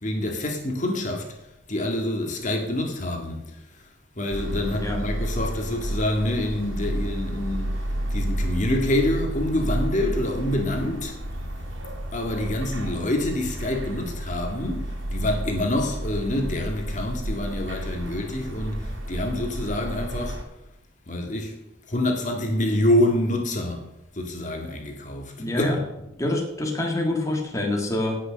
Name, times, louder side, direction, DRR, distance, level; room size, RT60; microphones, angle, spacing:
voice 1, 0.0-1.4 1.7-3.9 4.2-7.8 8.1-11.1 12.1-20.4 21.1-21.6 21.9-23.9 24.1-25.8, left 1 dB, 40° left, 1.9 m, -26 dB
sound 1, 4.3-20.4, right 1 dB, 80° right, 3.2 m, -31 dB
voice 2, 4.7-5.0 25.4-25.8 26.2-28.2, left 1 dB, 15° left, 1.8 m, -26 dB
17.5 x 6.4 x 6.3 m
head